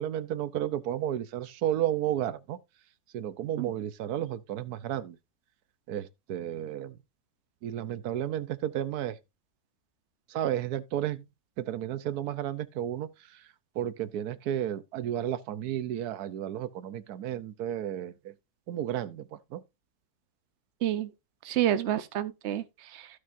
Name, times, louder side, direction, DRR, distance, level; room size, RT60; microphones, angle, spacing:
voice 1, 0.0-2.6 3.1-5.2 5.9-6.9 7.6-9.1 10.3-11.2 11.6-13.1 13.8-18.1 18.7-19.2 19.5-19.6, right 11 dB, 85° right, 1.3 m, -32 dB
voice 2, 21.4-23.1, right 11 dB, 55° right, 1.0 m, -29 dB
15.5 x 5.6 x 2.6 m
omnidirectional pair, 1.6 m